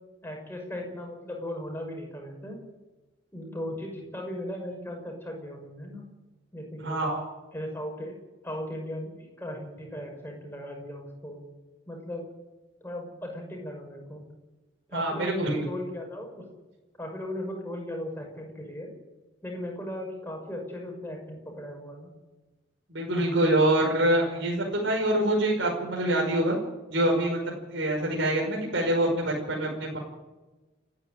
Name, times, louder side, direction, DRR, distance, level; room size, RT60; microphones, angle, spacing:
voice 1, 0.2-2.6 3.3-6.0 6.5-7.1 7.5-8.2 8.4-11.4 11.9-12.3 12.8-14.2 14.9-16.5 17.0-18.9 19.4-22.1, left 1 dB, 10° left, 1 dB, 6.1 m, -37 dB
voice 2, 6.8-7.2 14.9-15.6 22.9-26.6 26.9-27.4 27.7-30.0, right 1 dB, 65° right, -1 dB, 5.4 m, -25 dB
29.5 x 10.5 x 9.2 m, 1.1 s
head